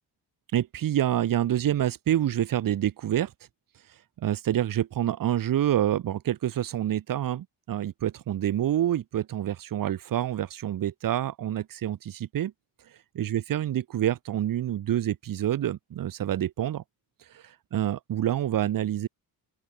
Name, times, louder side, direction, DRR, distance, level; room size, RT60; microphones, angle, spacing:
voice 1, 0.5-3.3 4.2-12.5 13.1-16.8 17.3-19.1, right 11 dB, 60° right, 1.0 m, -27 dB
open air
cardioid pair, 110°, 39 cm